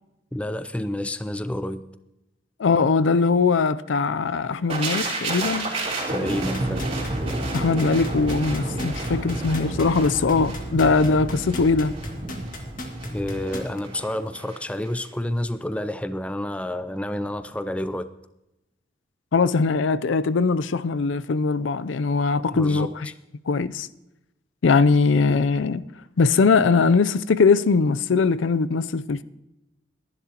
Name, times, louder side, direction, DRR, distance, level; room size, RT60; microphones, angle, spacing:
voice 1, 0.3-1.8 6.1-6.9 13.1-18.1 22.4-23.1, left 1 dB, 5° left, 0.4 m, -29 dB
voice 2, 2.6-5.7 7.5-11.9 19.3-23.1 23.5-23.9 24.6-25.8 26.2-29.2, left 4 dB, 85° left, 0.5 m, -21 dB
sound 1, 4.7-14.6 14.9-15.1, right 2 dB, 30° right, 3.5 m, -30 dB
sound 2, 6.3-13.8 14.3-14.4, left 1 dB, 45° left, 1.8 m, -36 dB
21.5 x 11.0 x 2.9 m
head